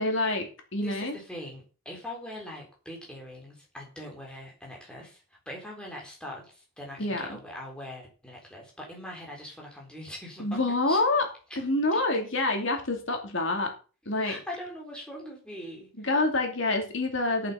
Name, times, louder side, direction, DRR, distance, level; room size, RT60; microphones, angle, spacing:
voice 1, 0.0-1.2 7.0-7.4 10.4-11.3 11.6-13.7 14.1-14.3 16.0-17.5, left 2 dB, 60° left, 3 dB, 2.7 m, -27 dB
voice 2, 0.8-10.6 10.9-11.0 14.2-16.1, left 1 dB, 5° left, -2 dB, 3.8 m, -42 dB
11.0 x 7.5 x 5.7 m, 0.36 s
head